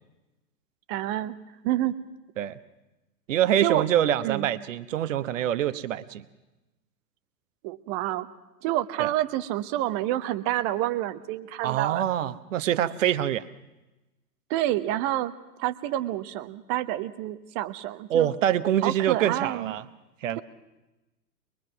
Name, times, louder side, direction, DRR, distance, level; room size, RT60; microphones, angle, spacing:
voice 1, 0.9-1.4 1.6-2.0 3.6-3.9 4.2-4.5 7.6-8.3 8.6-12.0 14.5-15.3 15.6-18.3 18.8-19.8, right 14 dB, 25° right, 13 dB, 0.9 m, -28 dB
voice 2, 3.3-6.2 9.0-9.1 11.6-13.4 18.1-19.8 20.2-20.4, right 11 dB, 50° right, 14 dB, 1.1 m, -25 dB
23.0 x 22.0 x 6.0 m, 1.0 s
figure-of-eight pair, 105°, 50 cm